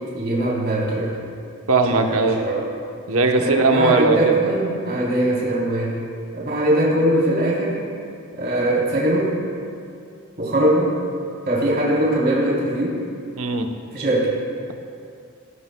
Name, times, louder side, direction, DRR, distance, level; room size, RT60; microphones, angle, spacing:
voice 1, 0.1-1.2 1.9-2.7 3.4-6.0 6.3-7.8 8.3-9.4 10.4-11.0 11.5-13.0 13.9-14.4, right 1 dB, 50° right, -5 dB, 3.6 m, -21 dB
voice 2, 1.7-2.4 3.1-4.3 13.4-13.7, right 3 dB, 75° right, 4 dB, 1.0 m, -18 dB
17.0 x 17.0 x 2.3 m, 2.5 s
head